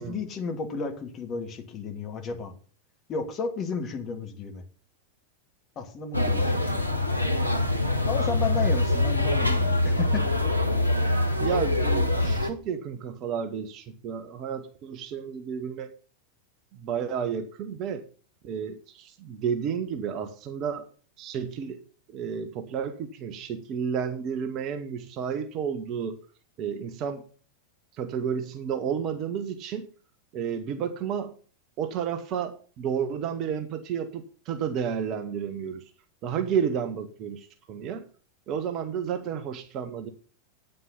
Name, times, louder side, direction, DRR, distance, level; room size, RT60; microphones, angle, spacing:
voice 1, 0.0-2.5 3.1-4.6 5.8-6.8 8.1-10.2 12.2-12.4, left 5 dB, 30° left, 4 dB, 2.7 m, -33 dB
sound 1, 6.1-12.5, left 2 dB, 90° left, 1.3 m, -24 dB
voice 2, 11.4-15.9 16.7-18.0 18.4-20.9 21.2-21.8 22.1-26.2 26.6-27.2 28.0-29.9 30.3-31.3 31.8-35.8 36.2-38.1 38.5-40.1, right 7 dB, 35° right, 9 dB, 1.2 m, -31 dB
9.5 x 9.2 x 5.5 m, 0.39 s
figure-of-eight pair, 90°, 0 cm